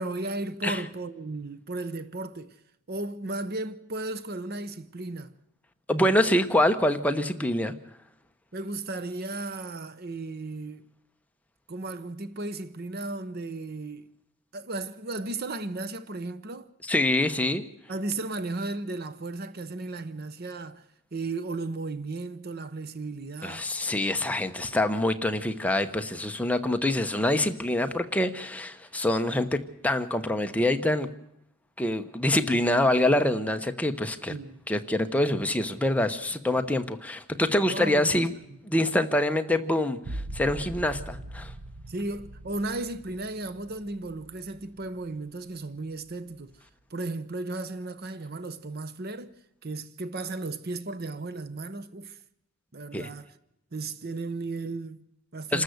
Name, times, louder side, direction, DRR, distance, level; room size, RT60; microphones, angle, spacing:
voice 1, 0.0-2.6 2.9-5.3 8.5-10.8 11.7-14.1 14.5-16.7 17.9-20.8 21.1-23.7 34.3-34.6 37.7-38.2 41.9-46.5 46.9-49.3 49.6-52.2 52.7-53.3 53.7-55.6, right 2 dB, 45° right, 0.8 m, -35 dB
voice 2, 5.9-7.7 16.8-17.6 23.4-31.1 31.8-34.3 34.7-38.3 38.7-41.5 52.9-53.1 55.5-55.6, left 1 dB, 5° left, 0.9 m, -25 dB
sound 1, 40.0-45.5 46.0-46.6, right 1 dB, 85° right, 0.8 m, -42 dB
27.0 x 13.0 x 7.9 m
head